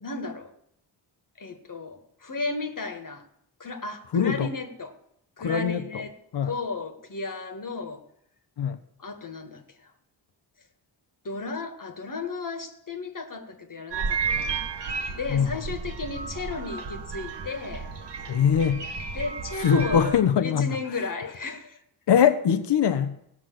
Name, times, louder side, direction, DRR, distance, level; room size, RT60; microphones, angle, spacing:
voice 1, 0.0-0.5 1.4-3.2 3.6-4.9 5.4-6.2 6.4-8.0 9.0-9.8 11.2-14.7 15.1-17.9 19.1-20.2 20.4-21.8, left 3 dB, 45° left, 1.8 m, -34 dB
voice 2, 4.1-4.5 5.4-6.1 6.3-6.5 8.6-8.8 15.3-15.6 18.3-18.8 19.6-20.7 22.1-23.2, left 8 dB, 65° left, 1.0 m, -22 dB
sound 1, 13.9-20.2, right 5 dB, 65° right, 1.7 m, -33 dB
16.0 x 6.1 x 7.7 m
cardioid pair, 65°, 45 cm